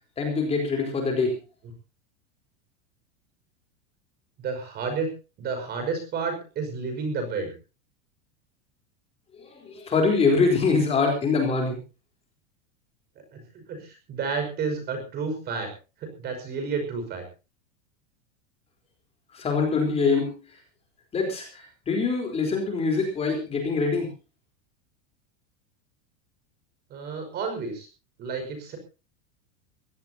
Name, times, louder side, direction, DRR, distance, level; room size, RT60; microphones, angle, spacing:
voice 1, 0.2-1.4 9.4-11.8 19.3-20.6 21.1-24.1, left 4 dB, 15° left, 2 dB, 3.9 m, -24 dB
voice 2, 4.4-5.1 5.4-7.5 13.3-15.7 16.0-17.2 26.9-27.9 28.2-28.8, right 4 dB, 25° right, 7 dB, 5.4 m, -31 dB
23.0 x 17.0 x 2.8 m, 0.31 s
supercardioid pair, 165°, 36 cm